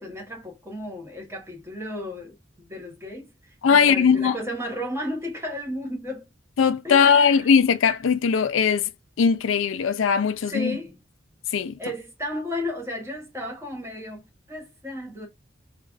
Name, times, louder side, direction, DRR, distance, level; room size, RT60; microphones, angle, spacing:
voice 1, 0.0-6.3 6.8-7.5 10.5-11.0 11.8-15.3, left 1 dB, 15° right, 1.1 m, -34 dB
voice 2, 3.6-4.4 6.6-8.9 9.2-10.8 11.5-11.8, left 6 dB, 85° left, 0.4 m, -19 dB
3.2 x 2.4 x 2.5 m
head